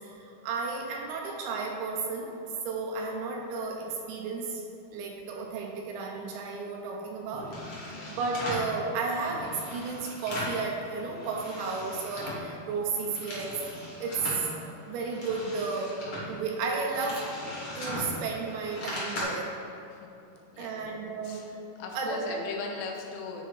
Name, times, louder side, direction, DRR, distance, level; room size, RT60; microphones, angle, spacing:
voice 1, 0.0-2.4 2.7-4.6 4.9-13.6 14.0-16.0 16.3-17.3 17.8-19.6 20.6-21.6 21.9-22.4, right 4 dB, 80° right, 1 dB, 2.4 m, -33 dB
sound 1, 7.3-8.7 9.2-10.6 11.0-12.5 12.9-14.4 14.9-19.2, left 1 dB, 50° left, 1.6 m, -39 dB
voice 2, 20.5-20.8 21.2-21.5 21.8-23.4, left 4 dB, 90° left, 1 dB, 2.9 m, -38 dB
9.9 x 3.4 x 4.6 m, 2.9 s
omnidirectional pair, 4.8 m